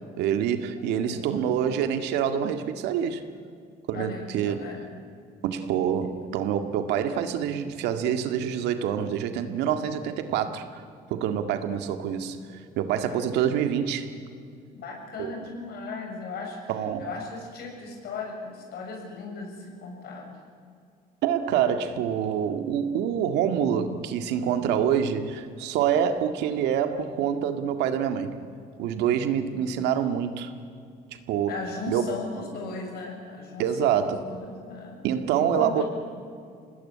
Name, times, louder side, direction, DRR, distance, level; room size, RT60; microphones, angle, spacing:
voice 1, 0.2-3.2 3.9-4.7 5.4-10.8 11.1-14.1 15.2-15.5 16.7-17.1 21.2-28.4 28.8-30.5 31.3-31.5 31.9-32.2 33.6-34.3 35.0-35.8, right 8 dB, 90° right, 8 dB, 2.0 m, -26 dB
voice 2, 3.9-4.9 13.0-13.3 14.8-16.7 17.0-20.3 31.5-35.0 35.3-35.8, left 4 dB, 70° left, 2 dB, 7.4 m, -37 dB
25.5 x 19.0 x 9.9 m, 2.3 s
cardioid pair, 110°, 17 cm